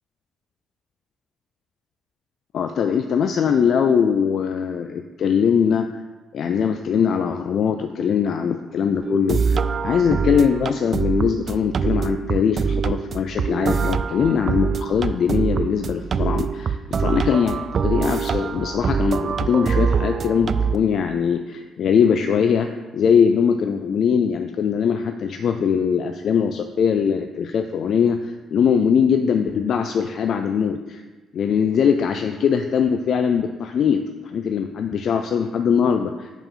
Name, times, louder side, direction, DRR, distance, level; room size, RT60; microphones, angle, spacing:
voice 1, 2.5-6.0 6.3-31.0 31.3-36.3, left 7 dB, 65° left, 7 dB, 0.4 m, -21 dB
sound 1, 9.0-20.8, right 6 dB, 50° right, 0.3 m, -24 dB
5.5 x 4.8 x 5.5 m, 1.2 s
cardioid pair, 90°, 0 cm